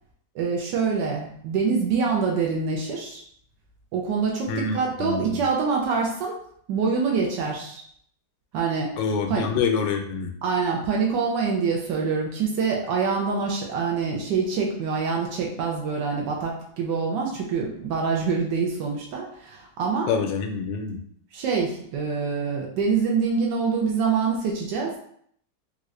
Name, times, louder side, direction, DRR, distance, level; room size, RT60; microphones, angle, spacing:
voice 1, 0.3-3.2 3.9-6.4 6.7-7.8 8.5-8.9 9.3-9.5 10.4-20.1 21.3-25.0, right 5 dB, 80° right, -1 dB, 1.2 m, -25 dB
voice 2, 4.5-5.4 9.0-10.3 20.1-21.0, left 5 dB, 85° left, 5 dB, 1.3 m, -26 dB
3.6 x 2.4 x 3.1 m, 0.65 s
omnidirectional pair, 1.9 m